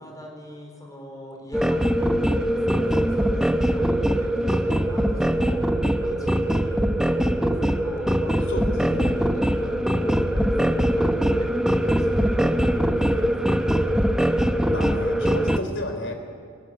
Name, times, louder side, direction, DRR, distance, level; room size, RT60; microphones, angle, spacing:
voice 1, 0.0-13.8, equal, 15° left, 1 dB, 4.7 m, -42 dB
sound 1, 1.5-15.6, equal, 5° right, 0.9 m, -22 dB
voice 2, 8.5-9.1 14.3-16.1, left 1 dB, 60° left, 6 dB, 3.6 m, -32 dB
23.0 x 18.0 x 9.9 m, 2.1 s
head